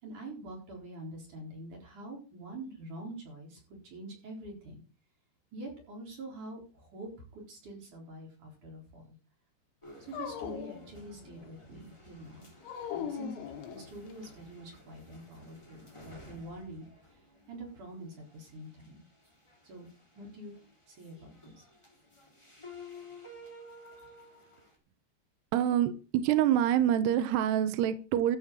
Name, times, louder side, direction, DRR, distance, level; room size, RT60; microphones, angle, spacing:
voice 1, 0.0-4.8 5.5-9.1 10.0-12.5 12.9-13.4 13.7-19.0 19.6-19.9 20.1-20.5 20.9-21.6, right 1 dB, 40° right, 0 dB, 5.1 m, -45 dB
sound 1, 9.8-24.7, left 2 dB, 5° left, 2.6 m, -54 dB
Dog, 10.1-11.5 12.6-14.3, left 8 dB, 75° left, 4.0 m, -40 dB
voice 2, 25.5-28.4, right 10 dB, 75° right, 10 dB, 2.6 m, -26 dB
14.0 x 5.7 x 7.4 m, 0.34 s
omnidirectional pair, 5.6 m